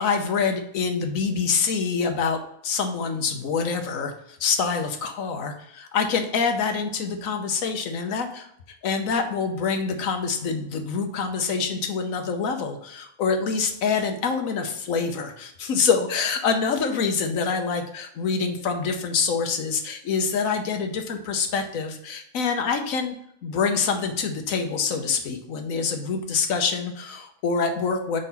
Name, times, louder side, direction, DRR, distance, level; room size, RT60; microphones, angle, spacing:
voice 1, 0.0-4.1 4.4-8.5 8.8-23.2 23.4-28.2, left 5 dB, 65° left, 5 dB, 1.2 m, -26 dB
5.0 x 4.1 x 5.6 m, 0.71 s
omnidirectional pair, 1.6 m